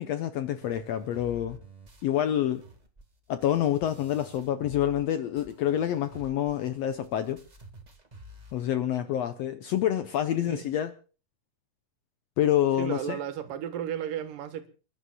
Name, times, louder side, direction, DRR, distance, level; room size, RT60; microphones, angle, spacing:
voice 1, 0.0-1.6 2.0-2.6 3.3-7.4 8.5-10.9 12.4-13.2, left 11 dB, 75° left, 1.5 m, -27 dB
sound 1, 0.6-5.1 5.4-8.6, equal, 30° right, 0.7 m, -51 dB
voice 2, 10.3-10.7 12.8-14.7, right 9 dB, 90° right, 3.0 m, -34 dB
29.5 x 11.0 x 2.3 m
omnidirectional pair, 3.7 m